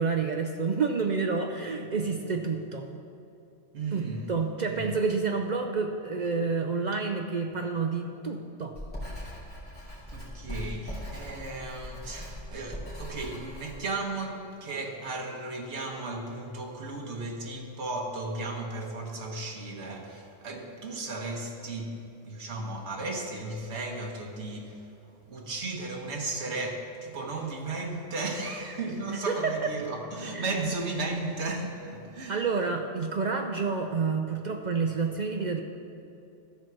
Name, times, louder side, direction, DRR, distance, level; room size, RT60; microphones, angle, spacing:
voice 1, 0.0-2.9 3.9-8.8 29.1-29.5 30.3-30.4 32.3-35.6, right 4 dB, 55° right, 0.5 m, -29 dB
voice 2, 3.7-4.3 4.7-4.9 10.1-32.4, right 2 dB, 75° right, 1.4 m, -35 dB
Writing, 8.7-13.8, equal, 10° left, 2.5 m, -40 dB
13.5 x 4.6 x 6.1 m
omnidirectional pair, 1.2 m